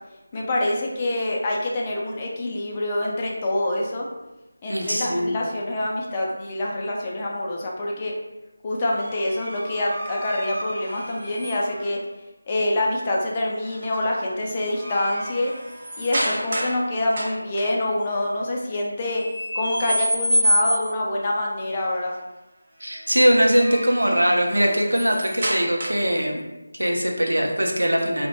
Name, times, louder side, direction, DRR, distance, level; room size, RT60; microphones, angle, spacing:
voice 1, 0.3-4.1 4.6-8.2 8.6-12.0 12.5-15.5 16.0-19.2 19.5-22.2, left 1 dB, 25° left, -2 dB, 0.3 m, -26 dB
voice 2, 4.7-5.4 22.8-26.4 26.8-28.3, equal, 90° right, 0 dB, 0.5 m, -21 dB
sound 1, 9.0-11.9 13.6-14.0 14.4-16.8 17.1-17.6 19.2-21.1 23.4-26.2, equal, 40° right, 0.5 m, -28 dB
2.2 x 2.1 x 2.8 m, 1.0 s
figure-of-eight pair, 165°, 0 cm